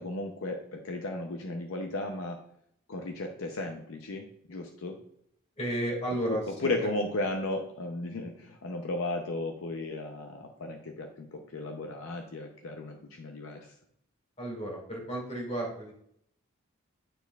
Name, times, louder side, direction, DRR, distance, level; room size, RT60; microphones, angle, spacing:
voice 1, 0.0-2.4 2.9-5.0 6.3-13.7, left 2 dB, 65° left, 3 dB, 0.6 m, -35 dB
voice 2, 5.6-6.7 14.4-15.9, right 1 dB, 30° left, -1 dB, 2.1 m, -33 dB
10.0 x 4.5 x 2.3 m, 0.72 s
head